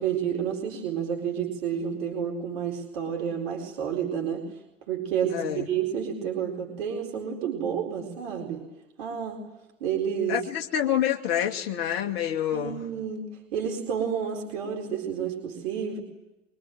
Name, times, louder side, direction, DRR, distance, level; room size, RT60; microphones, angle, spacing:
voice 1, 0.0-4.5 4.9-8.6 9.0-9.4 9.8-10.4 12.5-16.0, right 8 dB, 70° right, 0 dB, 4.4 m, -30 dB
voice 2, 5.3-5.7 10.3-12.9, left 10 dB, 60° left, 3 dB, 2.6 m, -27 dB
24.5 x 24.0 x 9.3 m, 0.94 s
figure-of-eight pair, 65°, 31 cm